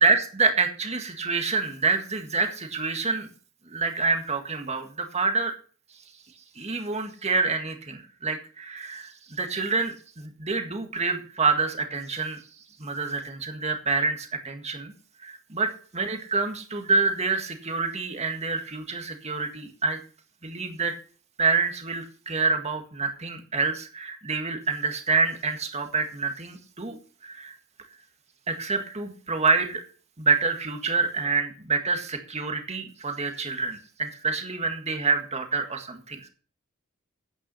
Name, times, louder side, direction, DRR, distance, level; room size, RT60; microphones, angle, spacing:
voice 1, 0.0-3.3 3.7-5.5 6.6-12.4 12.8-14.9 15.2-20.0 20.4-20.9 21.4-27.0 27.2-27.6 28.5-29.8 30.2-36.3, right 4 dB, 30° right, 5 dB, 1.8 m, -27 dB
9.8 x 9.1 x 5.5 m, 0.40 s
head